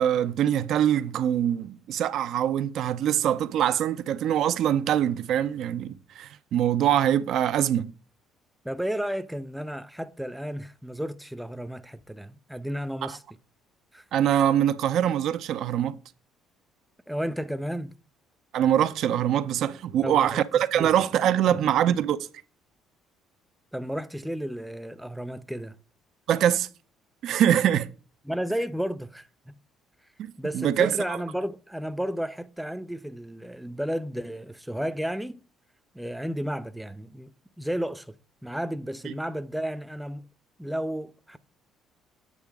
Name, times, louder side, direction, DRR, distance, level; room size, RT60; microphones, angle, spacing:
voice 1, 0.0-7.9 13.0-13.1 14.1-16.0 18.5-22.2 26.3-26.7 27.2-27.9 30.2-31.2 39.0-39.1, right 10 dB, 70° right, 0.5 m, -24 dB
voice 2, 8.6-13.2 13.9-14.0 17.1-18.0 20.0-20.4 20.7-20.9 21.5-21.7 23.7-25.8 28.3-29.5 30.4-35.4 35.9-37.3 37.6-38.2 38.4-40.3 40.6-41.4, equal, 5° right, 0.6 m, -32 dB
8.4 x 5.0 x 3.6 m
supercardioid pair, 80°, 0 cm